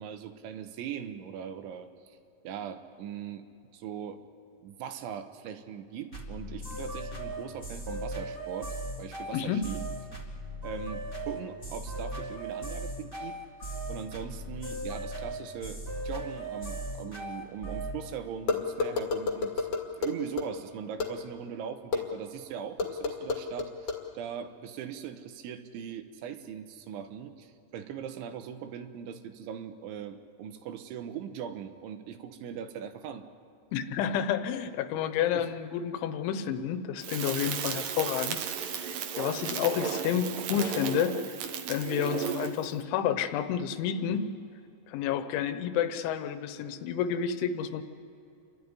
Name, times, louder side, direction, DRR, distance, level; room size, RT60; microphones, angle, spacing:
voice 1, 0.0-2.2 2.5-3.4 3.7-4.2 4.6-9.8 10.6-13.4 13.9-19.7 20.0-33.2 35.3-35.5, right 8 dB, 85° right, 8 dB, 3.5 m, -40 dB
sound 1, 6.1-18.0, right 1 dB, 15° left, 3.5 m, -37 dB
sound 2, 18.5-20.5 21.0-21.1 21.9-22.0 22.8-24.0, left 4 dB, 45° left, 2.3 m, -29 dB
voice 2, 33.7-38.4 38.6-41.4 41.7-44.3 44.9-47.8, left 9 dB, 85° left, 10 dB, 3.4 m, -30 dB
Crackle, 37.0-42.7, right 8 dB, 70° right, 2.1 m, -34 dB
29.5 x 12.5 x 9.7 m, 2.6 s
omnidirectional pair, 5.3 m